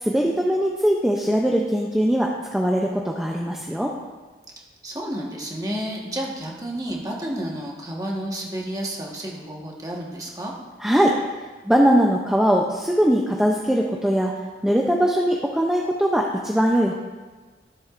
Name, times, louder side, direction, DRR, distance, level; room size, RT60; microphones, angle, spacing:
voice 1, 0.0-3.9 10.8-11.2 11.6-14.3 14.6-17.0, equal, 5° right, -1 dB, 0.5 m, -21 dB
voice 2, 4.6-10.5, right 1 dB, 20° right, -1 dB, 1.2 m, -31 dB
13.5 x 7.6 x 2.5 m, 1.3 s
head